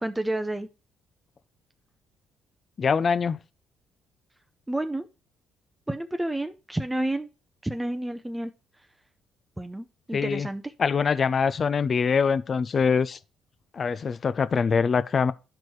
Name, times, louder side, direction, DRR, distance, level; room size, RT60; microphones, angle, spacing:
voice 1, 0.0-0.7 4.7-5.1 5.9-7.3 7.6-8.5 9.6-10.7, right 1 dB, 10° right, 0.6 m, -30 dB
voice 2, 2.8-3.4 10.1-10.5 10.8-13.2 13.7-15.3, left 6 dB, 45° left, 0.4 m, -24 dB
12.0 x 4.4 x 3.1 m
supercardioid pair, 60°, 0 cm